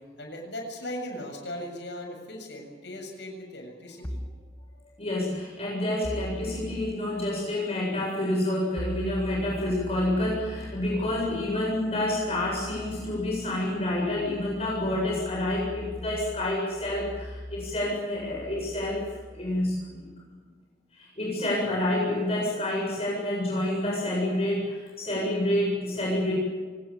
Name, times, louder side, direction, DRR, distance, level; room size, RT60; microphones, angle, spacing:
voice 1, 0.2-4.2, left 1 dB, 80° left, 3 dB, 7.3 m, -38 dB
sound 1, 4.0-4.5 6.0-7.0 8.8-20.1, equal, 10° left, 1.2 m, -41 dB
voice 2, 5.0-19.0 19.3-20.1 20.9-26.3, left 1 dB, 35° left, -4 dB, 7.8 m, -28 dB
26.0 x 19.5 x 8.9 m, 1.4 s
head